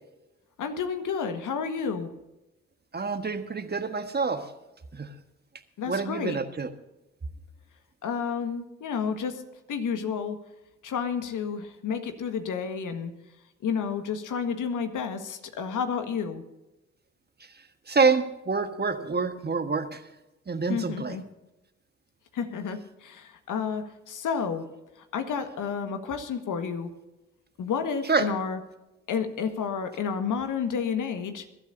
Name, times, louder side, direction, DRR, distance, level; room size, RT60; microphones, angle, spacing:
voice 1, 0.6-2.1 5.8-6.4 8.0-9.4 9.7-10.4 10.8-13.1 13.6-16.4 20.7-21.2 22.3-24.6 25.1-26.9 27.6-28.6 29.1-31.4, left 6 dB, 55° left, 7 dB, 1.7 m, -30 dB
voice 2, 2.9-4.5 4.9-5.1 5.9-6.7 17.9-20.0 20.5-21.2 28.1-28.3, right 4 dB, 25° right, 8 dB, 1.5 m, -27 dB
22.0 x 12.5 x 2.7 m, 0.97 s
hypercardioid pair, 50°, 38 cm